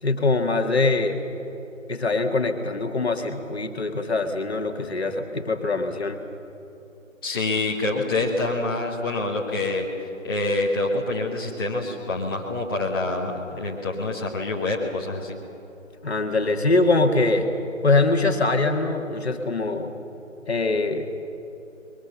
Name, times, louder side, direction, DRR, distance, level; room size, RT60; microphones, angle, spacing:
voice 1, 0.0-1.2 1.9-6.2 16.0-17.5 17.8-19.9 20.5-21.1, left 3 dB, 50° left, 4 dB, 1.9 m, -23 dB
voice 2, 7.2-9.9 10.2-15.4, left 2 dB, 15° left, -5 dB, 1.6 m, -26 dB
23.5 x 22.5 x 6.9 m, 3.0 s
figure-of-eight pair, 160°, 40 cm